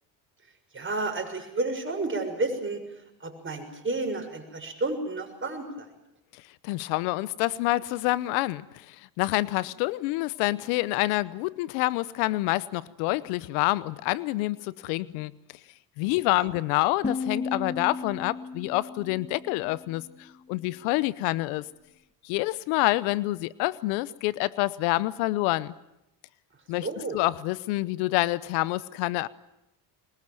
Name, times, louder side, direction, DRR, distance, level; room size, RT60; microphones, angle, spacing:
voice 1, 0.7-2.8 3.2-5.9 16.4-16.5 26.8-27.2, right 2 dB, 25° right, 4 dB, 6.7 m, -31 dB
voice 2, 6.3-15.3 16.0-21.7 22.2-25.7 26.7-26.9 27.1-29.3, left 19 dB, 85° left, 20 dB, 0.9 m, -27 dB
sound 1, 17.0-20.0, left 4 dB, 15° left, 0.9 m, -34 dB
22.5 x 21.5 x 9.2 m, 0.85 s
supercardioid pair, 80°, 47 cm